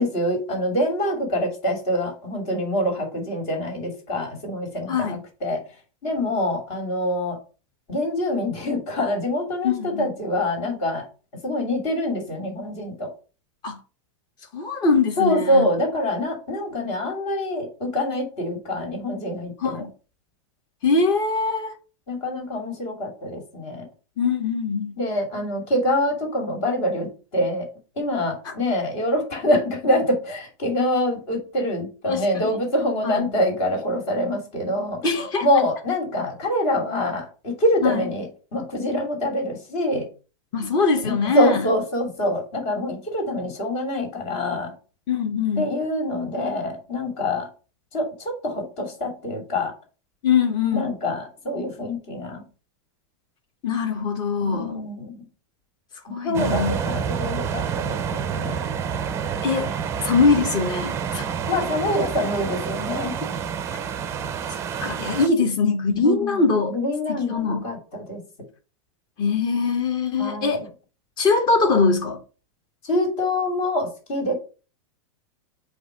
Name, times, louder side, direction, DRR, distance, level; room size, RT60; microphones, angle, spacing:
voice 1, 0.0-5.6 6.0-7.4 7.9-11.0 11.4-13.1 15.2-19.8 22.1-23.9 25.0-27.7 28.0-35.0 35.4-38.3 38.5-40.1 41.0-44.7 45.6-47.5 47.9-49.7 50.7-52.4 54.4-55.2 56.2-58.6 61.4-63.2 66.0-66.4 66.7-68.2 70.2-70.7 72.8-74.3, left 1 dB, 50° left, 2.7 m, -25 dB
voice 2, 4.9-5.2 9.6-10.1 13.6-13.8 14.5-15.7 19.6-19.9 20.8-21.8 24.2-25.0 28.4-28.5 32.0-32.6 33.0-33.3 35.0-35.5 37.8-38.0 40.5-41.6 45.1-45.7 50.2-50.9 53.6-54.7 56.1-56.8 59.4-59.7 60.0-61.3 64.8-66.7 67.1-67.6 69.2-70.6 71.2-72.2, left 4 dB, 25° left, 1.1 m, -22 dB
sound 1, 56.3-65.3, right 7 dB, 15° right, 0.5 m, -28 dB
7.9 x 2.7 x 5.1 m
supercardioid pair, 160°, 16 cm